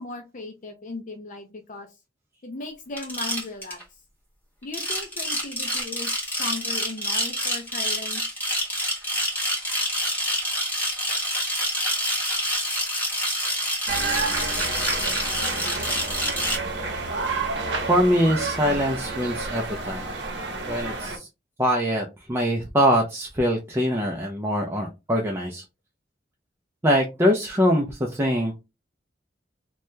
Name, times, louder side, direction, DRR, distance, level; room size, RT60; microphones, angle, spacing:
voice 1, 0.0-1.9 2.4-3.8 4.6-8.2, left 3 dB, 45° left, 5 dB, 0.4 m, -37 dB
sound 1, 3.0-3.8 4.6-16.6, equal, 10° left, 1.2 m, -27 dB
sound 2, 13.9-21.2, right 3 dB, 75° right, 0.8 m, -30 dB
voice 2, 17.9-20.0 20.7-21.3 21.6-25.6 26.8-28.5, equal, 15° right, -1 dB, 0.4 m, -23 dB
2.7 x 2.2 x 3.1 m, 0.25 s
head